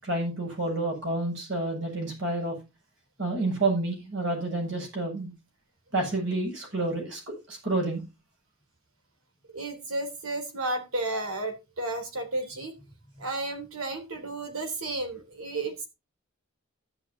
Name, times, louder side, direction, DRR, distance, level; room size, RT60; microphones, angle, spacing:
voice 1, 0.0-2.6 3.2-5.3 5.9-7.2 7.5-8.0, right 2 dB, 60° right, 0 dB, 7.2 m, -29 dB
voice 2, 9.5-12.8 13.2-15.9, right 2 dB, 85° right, 6 dB, 3.5 m, -32 dB
14.0 x 10.5 x 2.8 m, 0.26 s
head